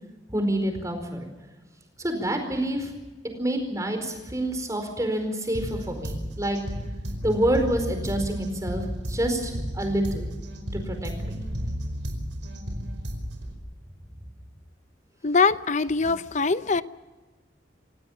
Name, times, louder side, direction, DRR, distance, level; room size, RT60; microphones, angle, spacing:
voice 1, 0.3-1.3 2.0-2.9 3.4-6.6 7.2-10.3 10.7-11.4, right 1 dB, 20° right, 5 dB, 4.7 m, -27 dB
sound 1, 5.5-13.5, equal, 80° right, 5.0 m, -33 dB
voice 2, 15.2-16.8, left 4 dB, 40° left, 14 dB, 0.7 m, -22 dB
27.0 x 17.5 x 7.4 m, 1.2 s
head